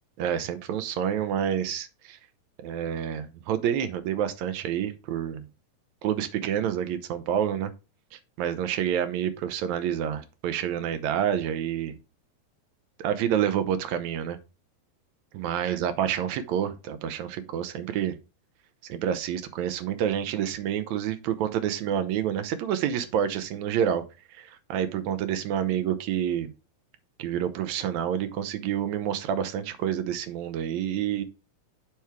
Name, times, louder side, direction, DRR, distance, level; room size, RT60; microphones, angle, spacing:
voice 1, 0.2-2.2 2.6-5.4 6.0-7.7 8.1-12.0 13.0-14.4 15.3-18.2 18.8-24.0 24.3-26.5 27.2-31.2, right 9 dB, 80° right, 9 dB, 1.7 m, -28 dB
9.2 x 3.5 x 4.6 m, 0.29 s
omnidirectional pair, 4.0 m